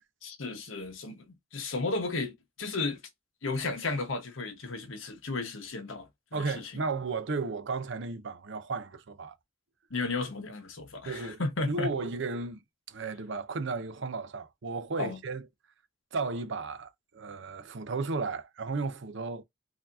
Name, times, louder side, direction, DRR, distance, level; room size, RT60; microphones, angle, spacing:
voice 1, 0.2-1.2 1.5-3.0 3.4-6.1 6.4-6.7 9.9-11.9 15.0-15.2, left 3 dB, 85° left, 1.2 m, -33 dB
voice 2, 6.3-9.4 11.1-11.4 11.7-12.6 12.9-15.5 16.1-19.4, right 4 dB, 65° right, 0.6 m, -34 dB
4.1 x 2.8 x 2.6 m
head